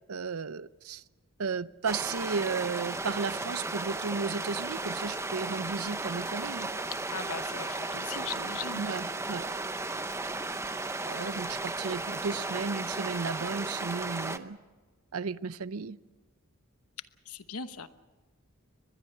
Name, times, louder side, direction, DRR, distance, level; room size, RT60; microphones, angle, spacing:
voice 1, 0.1-1.0 1.4-6.7 8.8-9.5 11.1-14.6 15.1-16.0, right 5 dB, 75° right, 0.6 m, -34 dB
sound 1, 1.9-14.4, right 2 dB, 10° right, 0.7 m, -35 dB
voice 2, 7.1-8.8 17.3-17.9, left 6 dB, 85° left, 1.1 m, -39 dB
23.5 x 21.0 x 6.7 m
head